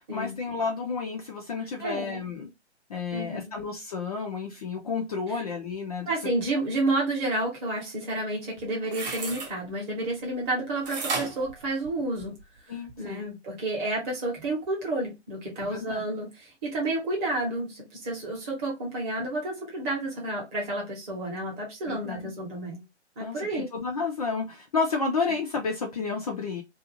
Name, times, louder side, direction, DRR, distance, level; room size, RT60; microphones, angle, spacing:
voice 1, 0.1-2.5 2.9-6.1 12.7-13.2 15.6-16.1 21.9-22.3 23.2-26.6, left 4 dB, 35° left, 0.5 m, -31 dB
voice 2, 1.8-2.2 3.1-3.5 5.3-5.4 6.1-12.3 12.7-22.8 23.2-23.7, right 2 dB, 15° right, 0.9 m, -30 dB
sound 1, 8.6-9.5 10.9-12.4 12.9-13.0, right 4 dB, 35° right, 1.0 m, -33 dB
2.5 x 2.3 x 2.8 m
hypercardioid pair, 150°, 35 cm